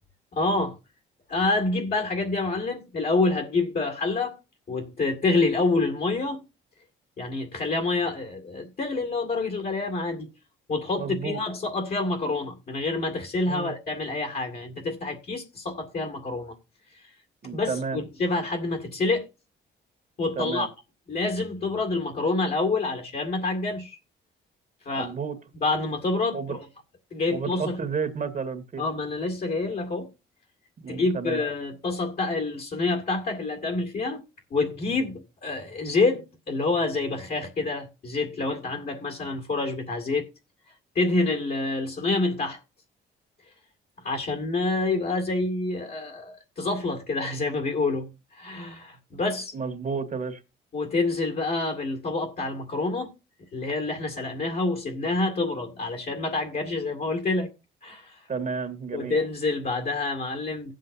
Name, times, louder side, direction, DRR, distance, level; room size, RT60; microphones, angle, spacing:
voice 1, 0.3-0.8 1.3-4.4 4.7-6.4 7.2-10.3 10.7-16.6 16.9-17.0 17.5-19.3 20.2-20.7 21.1-24.0 24.9-25.1 25.6-26.6 27.1-27.8 28.8-30.1 30.9-34.2 34.5-40.3 40.9-42.6 44.0-49.5 50.7-53.1 53.5-57.5 57.8-58.3 58.9-60.7, left 3 dB, 50° left, 2.2 m, -27 dB
voice 2, 11.0-11.4 13.4-13.7 17.4-18.0 20.4-20.7 25.0-25.4 26.3-26.6 27.3-28.8 30.8-31.4 49.5-50.4 58.3-59.2, right 5 dB, 40° right, 1.7 m, -31 dB
18.0 x 7.6 x 2.7 m
cardioid pair, 90°, 20 cm